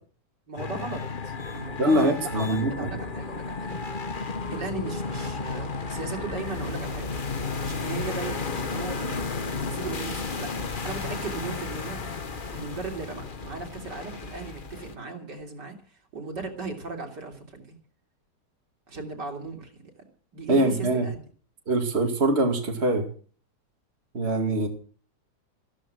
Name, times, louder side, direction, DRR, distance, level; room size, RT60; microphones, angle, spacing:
voice 1, 0.5-7.1 7.6-10.5 10.8-12.1 12.5-17.8 18.9-19.8 20.3-21.2, right 4 dB, 70° right, 2 dB, 3.9 m, -37 dB
sound 1, 0.6-15.0, left 4 dB, 35° left, 1.2 m, -33 dB
voice 2, 1.8-2.7 20.5-21.1 21.7-23.0 24.1-24.7, right 1 dB, 35° right, 3 dB, 2.5 m, -23 dB
15.0 x 13.5 x 6.3 m, 0.43 s
omnidirectional pair, 1.9 m